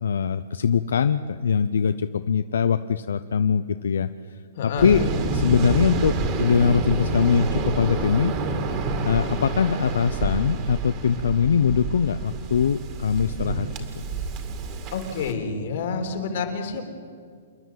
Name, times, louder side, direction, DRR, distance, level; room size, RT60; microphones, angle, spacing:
voice 1, 0.0-4.1 4.6-5.1 5.3-6.1 6.4-8.3 9.0-13.7 13.9-14.0, left 7 dB, 90° left, 11 dB, 0.6 m, -22 dB
voice 2, 4.5-4.9 14.9-16.8, left 5 dB, 55° left, 5 dB, 3.3 m, -28 dB
Waves surf, 4.8-15.3, right 3 dB, 25° right, 2.1 m, -28 dB
27.5 x 10.5 x 9.3 m, 2.1 s
hypercardioid pair, 160°, 0 cm